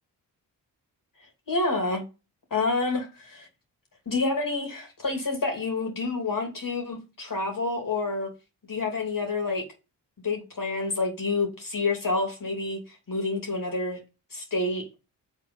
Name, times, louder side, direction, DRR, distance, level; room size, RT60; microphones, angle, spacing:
voice 1, 1.5-2.0 2.5-3.5 4.1-8.3 8.7-9.6 10.2-12.8 13.1-14.0 14.3-14.9, left 3 dB, 50° left, 2.7 m, -28 dB
6.4 x 4.1 x 5.4 m
supercardioid pair, 45°, 43 cm